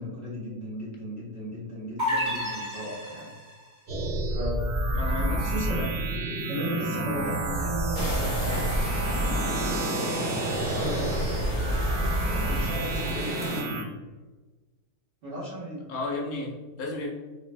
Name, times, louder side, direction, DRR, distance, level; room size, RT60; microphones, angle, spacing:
voice 1, 0.0-3.3 4.3-5.8 6.5-9.1 9.6-11.3 12.2-13.8 15.2-15.9, right 1 dB, 50° right, -8 dB, 0.8 m, -36 dB
sound 1, 2.0-3.6, left 1 dB, 20° right, 0.9 m, -30 dB
sound 2, 3.9-13.8, right 1 dB, 85° right, 0.4 m, -28 dB
voice 2, 4.9-5.9 15.9-17.1, left 2 dB, 75° left, -2 dB, 1.0 m, -33 dB
sound 3, 7.9-13.6, left 1 dB, 35° left, 0.9 m, -34 dB
3.2 x 2.0 x 2.5 m, 1.2 s
omnidirectional pair, 1.7 m